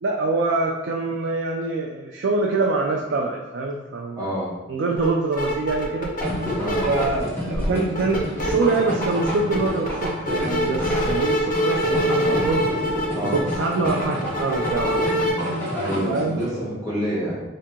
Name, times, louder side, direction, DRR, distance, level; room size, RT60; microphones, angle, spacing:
voice 1, 0.0-4.3 4.7-6.1 6.9-12.7 13.2-15.3 16.1-16.4, right 3 dB, 65° right, 0 dB, 0.4 m, -25 dB
voice 2, 4.2-4.5 6.6-6.9 13.1-13.4 15.7-17.4, equal, 20° right, -9 dB, 1.2 m, -27 dB
sound 1, 5.0-5.1 5.3-7.2 7.5-8.5 8.9-15.3, equal, 45° left, 0.6 m, -25 dB
sound 2, 6.2-16.5, equal, 10° left, 0.8 m, -29 dB
2.8 x 2.8 x 3.5 m, 1.1 s
head